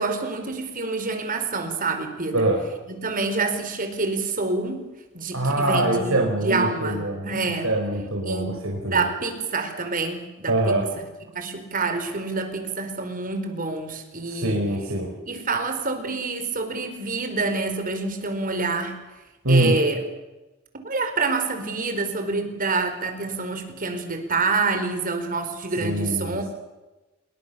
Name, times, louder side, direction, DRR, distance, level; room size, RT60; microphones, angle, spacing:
voice 1, 0.0-2.5 2.9-4.9 5.1-7.7 8.3-8.6 8.8-10.7 11.3-14.6 15.3-19.0 19.5-20.0 20.8-26.5, right 3 dB, 40° right, 7 dB, 4.4 m, -27 dB
voice 2, 5.3-7.3 7.6-9.0 10.5-10.9 14.3-15.1 19.4-19.7 25.8-26.5, right 1 dB, 75° right, 0 dB, 5.0 m, -23 dB
27.5 x 22.5 x 7.0 m, 1.1 s
head